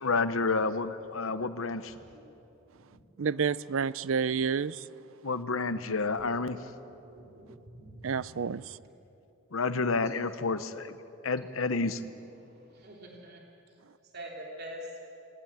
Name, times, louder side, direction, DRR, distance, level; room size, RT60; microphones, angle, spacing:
voice 1, 0.0-1.9 5.2-6.6 9.5-10.9 11.2-12.0, left 3 dB, 80° left, 11 dB, 0.9 m, -29 dB
voice 2, 3.2-4.9 8.0-8.8, right 6 dB, 75° right, 18 dB, 0.5 m, -29 dB
voice 3, 6.9-7.9 12.7-13.4 14.1-14.8, right 1 dB, 50° right, -1 dB, 3.2 m, -45 dB
26.5 x 21.0 x 8.8 m, 2.9 s
head